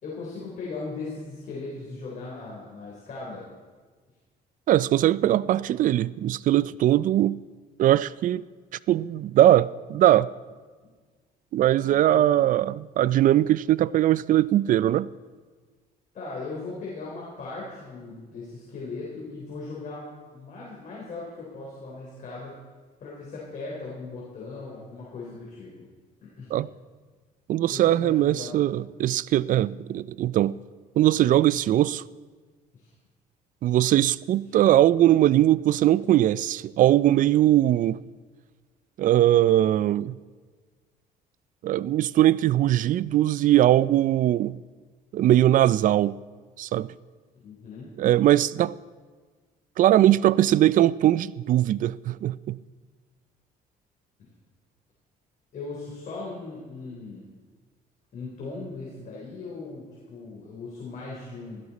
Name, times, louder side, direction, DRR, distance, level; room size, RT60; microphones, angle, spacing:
voice 1, 0.0-3.5 11.8-12.5 16.1-22.5 23.0-25.9 26.2-26.6 27.7-28.7 32.7-32.9 47.4-47.9 55.5-57.2 58.1-61.6, left 3 dB, 50° left, 3.6 m, -38 dB
voice 2, 4.7-7.4 7.8-8.4 8.9-10.3 11.5-15.1 26.5-26.7 27.5-30.6 31.0-32.0 33.6-38.0 39.0-40.2 41.6-44.6 45.1-46.2 46.6-46.9 48.0-48.7 49.8-52.6, right 13 dB, 50° right, 0.4 m, -21 dB
16.0 x 13.0 x 4.1 m
cardioid pair, 110°, 17 cm